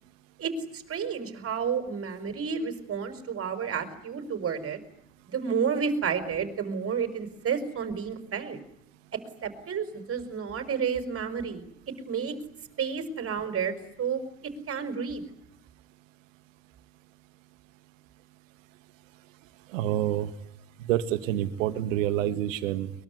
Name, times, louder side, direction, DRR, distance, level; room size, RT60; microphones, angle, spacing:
voice 1, 0.4-4.8 5.3-8.6 9.4-11.6 12.1-12.3 12.8-14.2 14.7-15.2, right 6 dB, 35° right, 9 dB, 5.6 m, -31 dB
voice 2, 19.7-20.3 20.9-22.9, right 12 dB, 70° right, 12 dB, 2.2 m, -27 dB
23.0 x 23.0 x 9.6 m, 0.75 s
hypercardioid pair, 75°, 40 cm